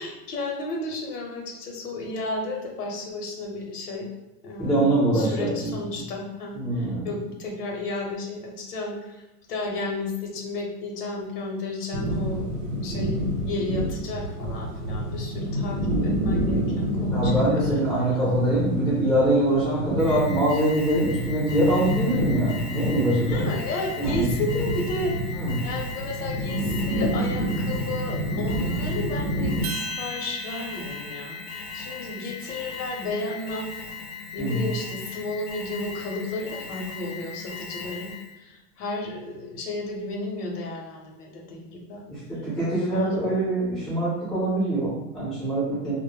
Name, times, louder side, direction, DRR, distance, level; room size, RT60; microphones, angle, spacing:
voice 1, 0.0-4.1 4.4-9.2 9.5-18.3 23.3-25.1 25.6-33.7 34.3-38.1 38.4-42.0 42.9-43.3, left 2 dB, 90° left, 0 dB, 0.8 m, -33 dB
voice 2, 4.6-5.8 6.5-7.1 17.1-23.4 24.0-24.3 25.3-25.6 34.4-34.7 42.1-45.9, right 1 dB, ahead, -9 dB, 0.6 m, -24 dB
sound 1, 11.9-29.6, equal, 85° right, 0.9 m, -28 dB
Alarm, 20.0-38.4, left 5 dB, 50° left, 0.6 m, -39 dB
sound 2, 29.6-34.0, right 1 dB, 55° right, 0.6 m, -40 dB
2.1 x 2.1 x 3.1 m, 1.0 s
supercardioid pair, 160°, 45 cm